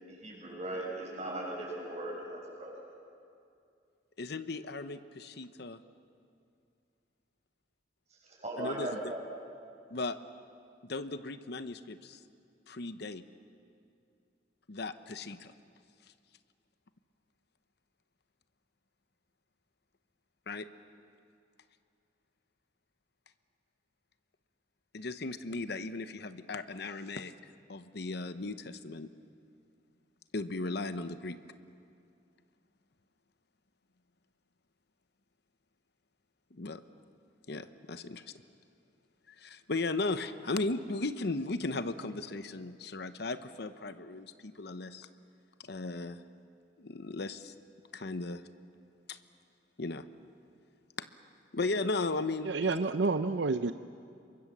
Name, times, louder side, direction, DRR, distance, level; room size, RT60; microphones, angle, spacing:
voice 1, 0.1-2.7 8.2-9.2, right 1 dB, 40° right, -2 dB, 7.4 m, -38 dB
voice 2, 4.2-5.8 8.6-9.1 9.9-10.2 10.9-12.2 12.7-13.2 14.7-15.5 20.5-20.7 24.9-27.3 27.7-29.1 30.3-31.4 36.5-36.8 37.5-38.2 39.3-45.1 45.6-46.2 46.8-47.5 47.9-48.4 49.1-49.2 49.8-50.0 51.0-51.1 51.5-52.8, left 3 dB, 65° left, 11 dB, 0.9 m, -36 dB
voice 3, 52.5-53.7, right 3 dB, 80° right, 10 dB, 0.6 m, -29 dB
27.5 x 23.5 x 7.5 m, 2.4 s
head